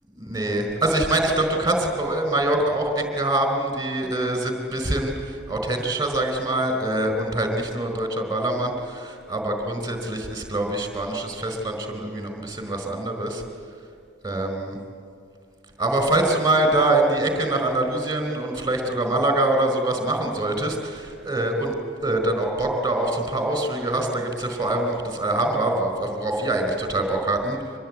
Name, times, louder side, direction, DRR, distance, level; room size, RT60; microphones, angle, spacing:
voice 1, 0.1-13.4 14.2-14.8 15.8-21.8 22.0-27.6, right 2 dB, 15° right, 5 dB, 4.4 m, -24 dB
25.0 x 20.5 x 9.6 m, 2.4 s
head